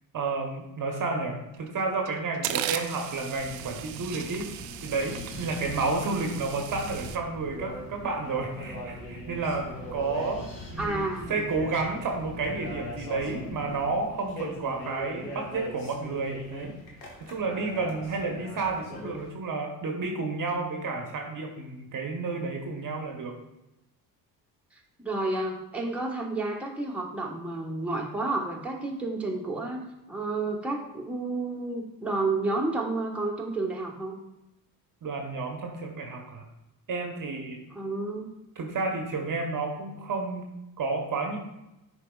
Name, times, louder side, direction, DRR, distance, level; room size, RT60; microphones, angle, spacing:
voice 1, 0.1-4.5 4.8-23.4 35.0-36.4 36.9-37.6 38.6-41.4, right 3 dB, 40° right, 3 dB, 1.1 m, -31 dB
sound 1, 1.5-1.7 2.0-7.2, right 12 dB, 75° right, 0.6 m, -37 dB
Wind, 3.4-14.1, left 1 dB, 50° left, 2.3 m, -44 dB
sound 2, 7.4-19.3, left 1 dB, 85° left, 1.3 m, -42 dB
voice 2, 10.8-11.5 25.0-29.8 30.1-34.2 37.7-38.3, right 2 dB, 5° right, -1 dB, 1.3 m, -30 dB
10.0 x 4.5 x 2.3 m, 0.95 s
hypercardioid pair, 55°, 50 cm